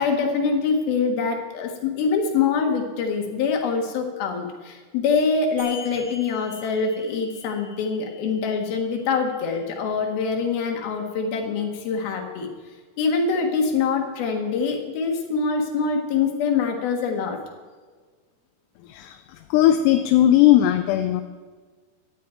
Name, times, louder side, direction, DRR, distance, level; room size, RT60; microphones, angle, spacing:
voice 1, 0.0-12.5 13.0-17.4 19.1-19.2, left 5 dB, 65° left, 2 dB, 3.4 m, -24 dB
sound 1, 5.6-10.6, left 4 dB, 65° right, 7.2 m, -45 dB
voice 2, 19.5-21.2, left 12 dB, 80° left, 7 dB, 2.7 m, -17 dB
18.0 x 12.0 x 4.6 m, 1.5 s
omnidirectional pair, 5.0 m